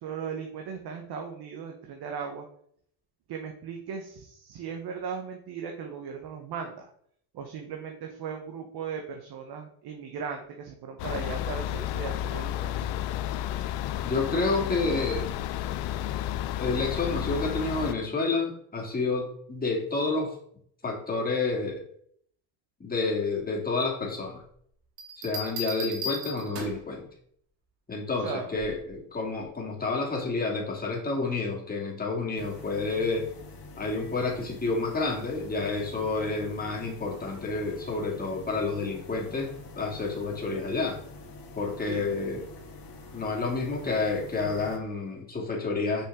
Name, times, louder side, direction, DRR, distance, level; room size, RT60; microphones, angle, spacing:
voice 1, 0.0-2.4 3.3-6.9 7.3-12.9 28.2-28.5 41.8-42.1, right 6 dB, 60° right, 3 dB, 1.2 m, -37 dB
sound 1, 11.0-17.9, left 12 dB, 75° left, 0.6 m, -32 dB
voice 2, 14.0-15.3 16.6-20.3 20.8-21.8 22.8-24.4 25.2-27.1 27.9-33.3 33.8-41.0 41.5-42.4 43.1-46.0, left 3 dB, 20° left, -2 dB, 2.3 m, -29 dB
Bell, 25.0-26.9 28.5-28.9, left 1 dB, 85° right, 1.9 m, -36 dB
sound 2, 32.4-44.8, left 2 dB, 55° left, 1.7 m, -46 dB
6.0 x 5.8 x 3.7 m, 0.65 s
cardioid pair, 105°, 43 cm